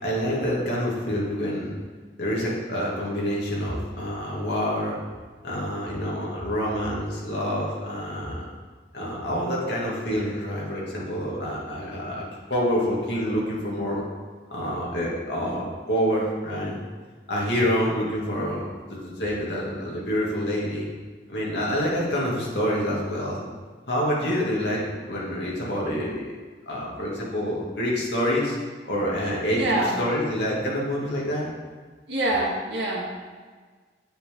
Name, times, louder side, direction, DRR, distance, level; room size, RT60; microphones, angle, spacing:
voice 1, 0.0-1.7 2.2-5.0 5.4-8.5 8.9-12.2 12.5-14.0 14.5-16.8 17.3-18.6 18.9-20.9 21.3-23.4 23.9-26.2 26.7-28.6 28.8-31.5, equal, 75° left, -5 dB, 2.3 m, -27 dB
voice 2, 29.6-30.0 32.1-33.1, right 1 dB, 90° right, -4 dB, 1.8 m, -25 dB
8.6 x 8.1 x 3.7 m, 1.5 s
head